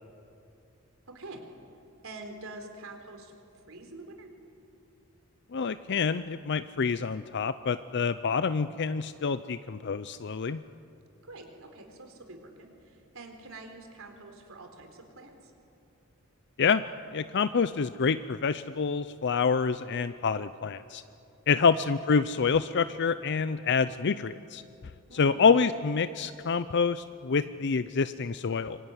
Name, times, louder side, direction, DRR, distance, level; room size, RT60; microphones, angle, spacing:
voice 1, 1.1-1.4 2.0-3.3 3.6-4.3 11.2-15.5 21.5-21.6 25.1-25.6, right 2 dB, 70° right, 5 dB, 4.0 m, -46 dB
voice 2, 5.5-10.6 16.6-16.8 17.1-21.0 21.5-24.6 25.1-28.8, left 5 dB, 55° left, 13 dB, 0.5 m, -27 dB
25.5 x 23.5 x 9.7 m, 2.7 s
head